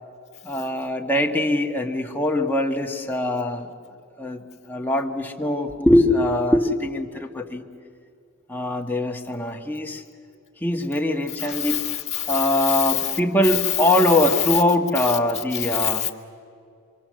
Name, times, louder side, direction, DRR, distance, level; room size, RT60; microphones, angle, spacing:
voice 1, 0.4-3.7 4.2-7.6 8.5-10.0 10.6-11.8 12.3-16.1, left 1 dB, 10° left, 1 dB, 1.4 m, -22 dB
voice 2, 11.4-13.2 13.4-14.6 15.0-15.2 15.5-16.1, left 12 dB, 30° left, 0 dB, 1.9 m, -26 dB
25.5 x 25.5 x 7.6 m, 2.4 s
head